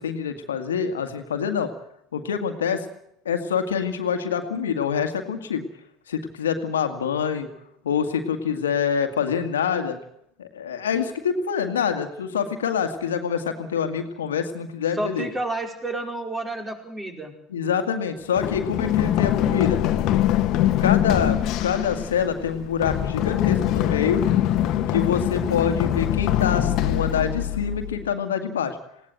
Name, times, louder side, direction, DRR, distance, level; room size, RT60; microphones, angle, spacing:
voice 1, 0.0-1.7 2.1-2.8 3.3-5.7 6.1-7.5 7.8-10.0 10.4-15.3 17.5-19.8 20.8-24.2 24.9-28.8, left 7 dB, 90° left, 6 dB, 1.9 m, -26 dB
voice 2, 15.0-17.3, right 2 dB, 20° right, 4 dB, 5.2 m, -30 dB
Run, 18.4-28.1, left 12 dB, 60° left, 1.6 m, -23 dB
20.0 x 17.0 x 7.8 m, 0.73 s
hypercardioid pair, 75°, 0 cm